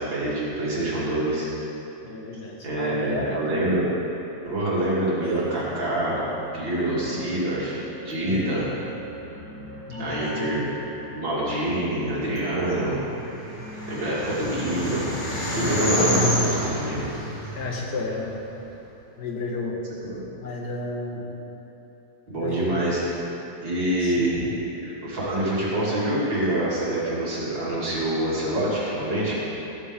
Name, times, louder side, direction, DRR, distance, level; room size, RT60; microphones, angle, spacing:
voice 1, 0.0-1.5 2.6-3.9 4.4-6.2 6.5-8.7 10.0-10.7 11.1-13.0 13.9-15.1 15.5-17.1 20.0-20.2 22.3-23.0 23.6-29.5, right 1 dB, 90° right, -8 dB, 3.8 m, -26 dB
voice 2, 2.0-3.5 8.3-8.6 9.9-10.7 17.6-18.4 19.2-19.8 20.4-21.3 22.4-22.7 24.0-24.3, left 3 dB, 60° left, -1 dB, 2.0 m, -32 dB
sound 1, 5.2-18.2, right 1 dB, 30° right, 2.3 m, -42 dB
sound 2, 13.2-18.6, equal, 75° left, 3.4 m, -28 dB
14.5 x 13.0 x 3.7 m, 3.0 s
omnidirectional pair, 2.0 m